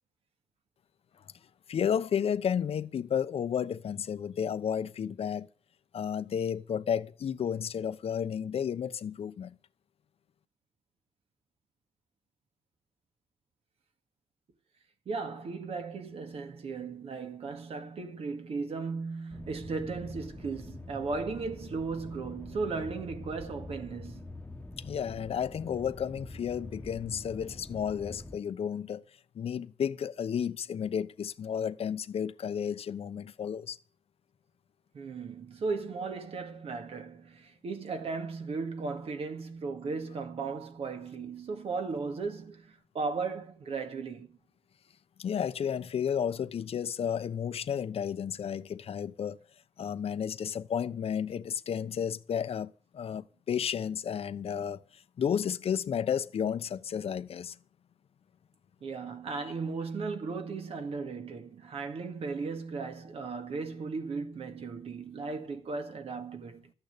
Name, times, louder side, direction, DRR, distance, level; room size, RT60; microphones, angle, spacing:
voice 1, 1.7-5.5 5.9-9.6 24.8-29.0 29.3-33.8 45.2-49.4 49.8-57.6, left 8 dB, 65° left, 0.9 m, -32 dB
voice 2, 15.1-24.3 34.9-44.4 58.8-66.7, right 4 dB, 65° right, 2.1 m, -36 dB
sound 1, 19.3-28.4, left 2 dB, 15° left, 1.3 m, -45 dB
13.5 x 9.0 x 8.2 m
cardioid pair, 95°, 11 cm